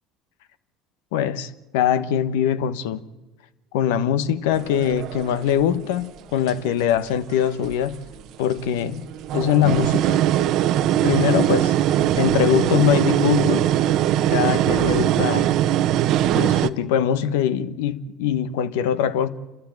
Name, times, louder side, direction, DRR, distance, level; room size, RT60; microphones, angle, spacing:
voice 1, 1.1-3.0 3.7-8.0 8.4-9.1 9.3-10.2 11.0-11.7 12.2-13.7 14.3-15.5 16.3-19.3, left 9 dB, 80° left, 1.1 m, -22 dB
sound 1, 4.5-5.9 6.5-7.0 7.6-8.2 8.8-16.7, right 12 dB, 65° right, 0.9 m, -21 dB
28.5 x 13.0 x 8.9 m
hypercardioid pair, 80°, 0 cm